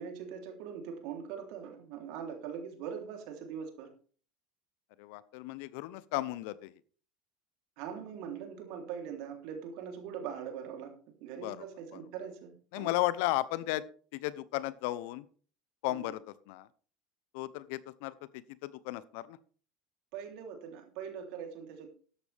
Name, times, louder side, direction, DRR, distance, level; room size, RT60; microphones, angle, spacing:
voice 1, 0.0-3.9 7.8-10.9 11.2-12.9 15.9-16.1 20.1-21.9, right 7 dB, 65° right, 3 dB, 3.4 m, -42 dB
voice 2, 5.0-6.8 11.3-11.7 11.9-12.0 12.7-13.8 14.1-15.2 15.8-16.7 17.3-19.4, left 17 dB, 70° left, 18 dB, 0.8 m, -35 dB
13.5 x 11.0 x 3.5 m, 0.42 s
hypercardioid pair, 85°, 0 cm